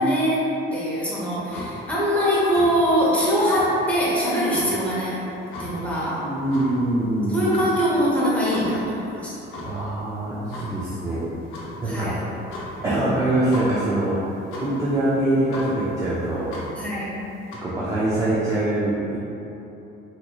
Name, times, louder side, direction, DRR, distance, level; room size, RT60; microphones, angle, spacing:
voice 1, 0.0-5.2 5.6-6.2 7.3-9.4 11.9-12.2 16.7-17.2, equal, 5° left, -8 dB, 0.8 m, -22 dB
sound 1, 1.2-17.6, left 1 dB, 70° left, 0.7 m, -39 dB
voice 2, 6.2-7.5 9.6-11.2 11.8-12.2 12.8-16.6 17.5-19.2, right 1 dB, 15° right, -8 dB, 0.4 m, -24 dB
3.7 x 3.0 x 2.3 m, 3.0 s
cardioid pair, 145°, 21 cm